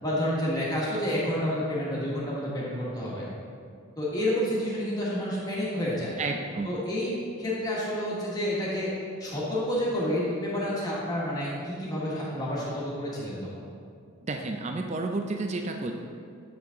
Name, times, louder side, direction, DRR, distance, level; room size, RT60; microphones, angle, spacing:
voice 1, 0.0-3.3 4.0-6.1 6.7-7.1 7.4-8.9 9.2-13.6, equal, 20° left, -6 dB, 1.4 m, -29 dB
voice 2, 6.2-6.8 14.2-15.9, right 3 dB, 30° right, 4 dB, 0.4 m, -31 dB
7.7 x 5.9 x 3.8 m, 2.2 s
head